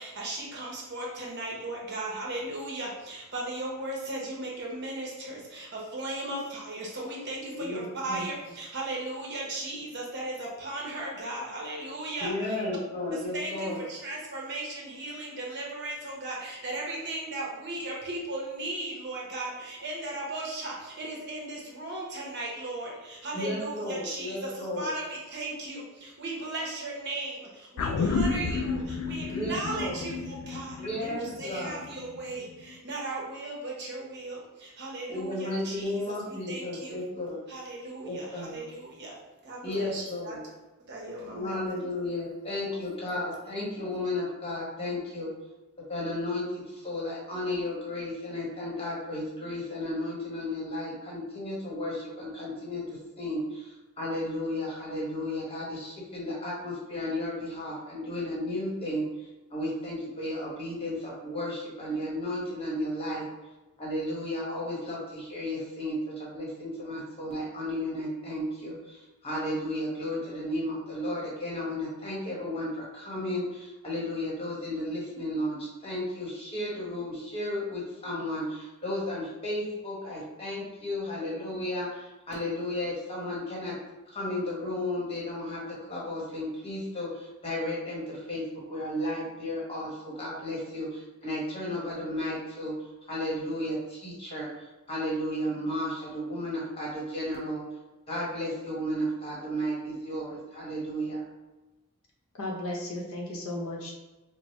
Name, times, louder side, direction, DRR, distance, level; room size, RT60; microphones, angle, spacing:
voice 1, 0.0-12.6 13.1-37.0 37.5-39.2 39.4-40.4 40.9-41.6 42.7-42.8, right 2 dB, 50° right, -3 dB, 0.9 m, -37 dB
voice 2, 7.6-8.3 12.2-13.8 23.3-24.9 29.3-30.0 30.8-31.8 35.1-37.4 38.0-38.6 39.6-40.4 41.3-45.3 45.9-52.8 53.2-63.2 63.8-83.7 84.1-85.6 85.9-92.7 93.1-97.7 98.1-101.2, left 1 dB, 25° left, -5 dB, 1.1 m, -33 dB
sound 1, 27.8-32.4 32.7-32.8, left 4 dB, 85° left, 0.3 m, -31 dB
voice 3, 102.4-103.9, left 1 dB, 70° left, -2 dB, 0.8 m, -34 dB
4.2 x 2.1 x 3.1 m, 1.1 s
head